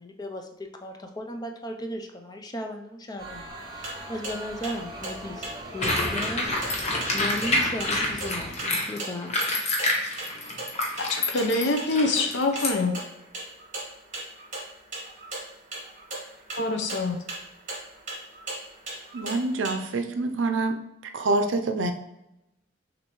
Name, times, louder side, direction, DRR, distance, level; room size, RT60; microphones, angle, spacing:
voice 1, 0.0-6.8 7.1-9.4, left 1 dB, 20° left, 4 dB, 0.5 m, -36 dB
sound 1, 3.2-8.6, right 1 dB, 20° right, 0.6 m, -41 dB
sound 2, 3.6-19.7, right 2 dB, 40° right, 1.5 m, -39 dB
sound 3, 5.8-12.7, left 1 dB, 35° left, 0.9 m, -27 dB
voice 2, 11.0-12.9 16.6-17.2, left 3 dB, 65° left, 4 dB, 0.7 m, -25 dB
voice 3, 19.1-20.8 21.1-21.9, right 2 dB, 80° right, 6 dB, 0.5 m, -26 dB
6.2 x 2.7 x 3.0 m, 0.89 s
head